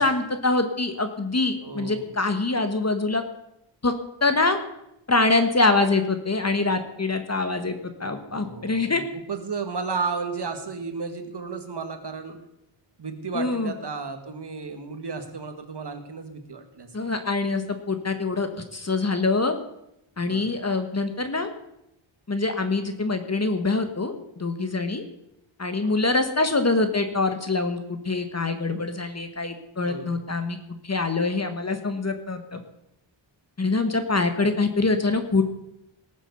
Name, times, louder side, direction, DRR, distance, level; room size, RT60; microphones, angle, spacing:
voice 1, 0.0-3.2 3.8-3.9 4.2-4.6 5.1-9.0 13.3-13.7 16.9-19.5 20.2-21.5 22.3-25.0 25.6-30.6 30.8-32.6 33.6-35.4, left 3 dB, 30° left, 8 dB, 1.4 m, -24 dB
voice 2, 1.6-2.1 8.3-12.4 13.0-17.2 20.3-20.4 25.8-25.9 29.8-30.2, right 4 dB, 55° right, 6 dB, 1.9 m, -33 dB
18.5 x 7.3 x 6.9 m, 0.81 s
wide cardioid pair, 120°, 48 cm